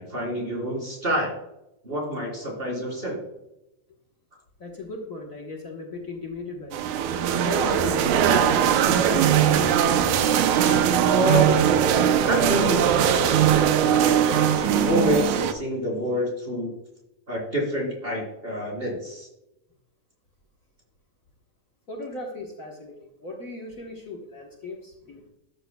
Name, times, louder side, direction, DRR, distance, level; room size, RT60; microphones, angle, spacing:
voice 1, 0.0-1.3 1.8-3.2 11.1-11.6 12.3-13.4 13.9-16.7 17.3-19.3, equal, 20° right, -2 dB, 3.6 m, -27 dB
voice 2, 4.6-6.8 7.4-9.2 10.4-10.9 21.9-25.3, left 3 dB, 85° left, 0 dB, 0.7 m, -37 dB
sound 1, 6.7-15.5, right 9 dB, 80° right, 2.1 m, -20 dB
13.0 x 9.5 x 2.3 m, 0.89 s
omnidirectional pair, 3.4 m